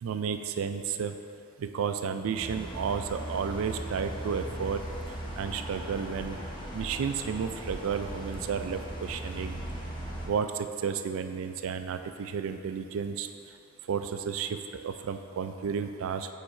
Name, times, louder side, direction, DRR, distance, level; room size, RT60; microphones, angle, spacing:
voice 1, 0.0-1.1 1.6-4.8 5.4-6.4 6.7-9.6 10.3-13.3 13.9-16.3, right 6 dB, 70° right, 8 dB, 0.3 m, -32 dB
sound 1, 2.4-10.3, right 1 dB, 20° left, 0.7 m, -38 dB
5.5 x 4.7 x 4.2 m, 2.6 s
head